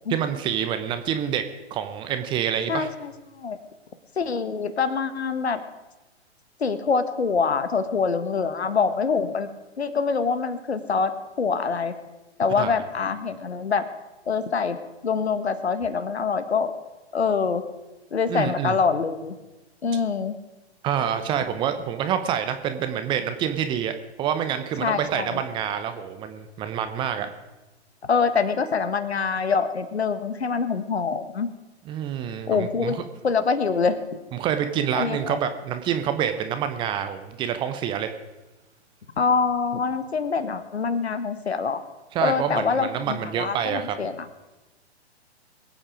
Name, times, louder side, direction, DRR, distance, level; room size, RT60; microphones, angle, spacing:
voice 1, 0.1-1.4 1.7-2.9 12.6-12.7 18.3-18.8 20.8-27.3 31.9-33.0 34.3-38.1 42.1-44.0, right 9 dB, 15° right, 9 dB, 0.7 m, -27 dB
voice 2, 2.7-3.6 4.2-5.6 6.6-9.5 9.8-11.1 11.4-11.9 12.4-13.8 14.3-14.8 15.0-16.7 17.1-17.7 18.1-19.3 19.8-20.4 24.8-25.4 28.0-31.5 32.5-34.0 34.9-35.4 39.2-41.8 42.2-44.3, left 5 dB, 70° left, 11 dB, 1.5 m, -25 dB
22.0 x 8.7 x 5.0 m, 1.1 s
figure-of-eight pair, 120°, 33 cm